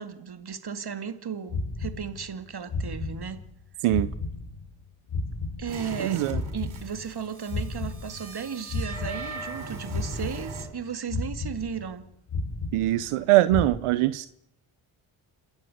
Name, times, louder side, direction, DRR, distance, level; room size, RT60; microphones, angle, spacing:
voice 1, 0.0-3.4 5.6-6.3 6.5-12.0, right 7 dB, 50° right, 2.4 m, -35 dB
sound 1, 1.5-2.4 2.7-3.6 3.9-6.0 6.3-8.4 8.7-9.6 9.9-10.8 11.1-12.0 12.3-13.2 13.5-13.7, left 3 dB, 65° left, 6.2 m, -33 dB
sound 2, 5.7-10.6, right 3 dB, 70° right, 6.3 m, -40 dB
voice 2, 6.0-6.4 12.7-14.3, right 16 dB, 85° right, 0.8 m, -22 dB
27.5 x 14.0 x 8.0 m
supercardioid pair, 55°, 50 cm